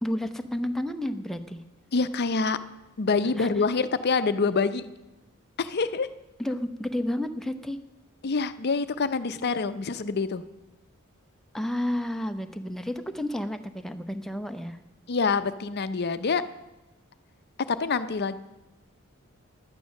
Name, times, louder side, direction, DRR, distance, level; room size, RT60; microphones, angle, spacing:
voice 1, 0.0-1.6 3.4-3.5 6.4-7.8 11.5-14.8, left 1 dB, ahead, 7 dB, 0.7 m, -31 dB
voice 2, 1.9-2.6 3.0-4.8 5.6-6.1 8.2-10.4 15.1-16.4 17.7-18.4, left 4 dB, 50° left, 12 dB, 0.6 m, -26 dB
11.5 x 9.1 x 6.4 m, 1.0 s
head